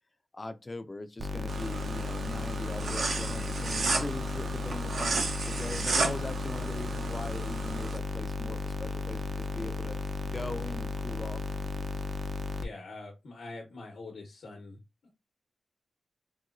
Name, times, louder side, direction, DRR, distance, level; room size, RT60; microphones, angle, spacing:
voice 1, 0.3-10.0 10.2-11.9, left 2 dB, 30° left, 0.4 m, -40 dB
sound 1, 1.2-12.7, left 2 dB, 55° right, 0.5 m, -34 dB
sound 2, 1.5-8.0, right 4 dB, 80° right, 0.8 m, -34 dB
voice 2, 12.6-15.1, left 3 dB, 85° left, 0.9 m, -45 dB
4.2 x 2.2 x 2.4 m
cardioid pair, 80°, 0 cm